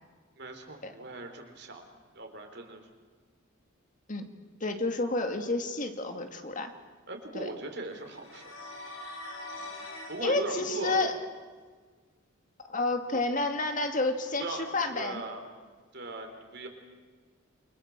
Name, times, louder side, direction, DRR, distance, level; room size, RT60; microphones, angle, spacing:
voice 1, 0.4-1.8 2.1-2.9 7.1-8.5 9.5-9.7 10.1-11.2 14.4-14.7 14.9-15.4 15.9-16.7, right 2 dB, 55° right, 4 dB, 4.2 m, -39 dB
voice 2, 4.6-6.7 7.3-7.5 10.2-11.1 12.7-15.2, left 2 dB, 40° left, 6 dB, 2.3 m, -30 dB
sound 1, 8.0-10.2, left 2 dB, 85° left, 7.5 m, -42 dB
29.0 x 24.5 x 7.5 m, 1.5 s
head